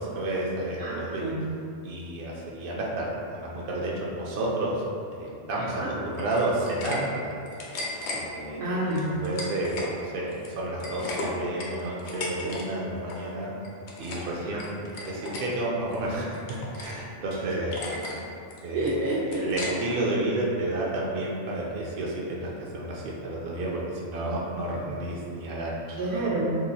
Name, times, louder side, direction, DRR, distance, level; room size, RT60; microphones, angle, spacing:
voice 1, 0.0-1.3 1.8-4.8 5.1-7.3 8.1-8.6 9.2-13.5 14.0-18.3 18.6-26.0, right 1 dB, 60° right, -4 dB, 0.7 m, -31 dB
voice 2, 0.8-1.4 5.5-5.9 8.6-9.1 14.4-14.6 17.3-17.4 18.7-19.4 26.0-26.6, right 2 dB, 80° right, -7 dB, 1.2 m, -29 dB
sound 1, 6.1-7.0 7.3-8.2 8.9-9.9 10.3-12.6 12.9-13.2 13.6-14.3 14.6-15.4 15.9-17.0 17.3-17.4 17.7-18.2 18.5-20.0, left 2 dB, 75° left, 0.9 m, -36 dB
2.9 x 2.5 x 4.0 m, 2.5 s
omnidirectional pair, 1.2 m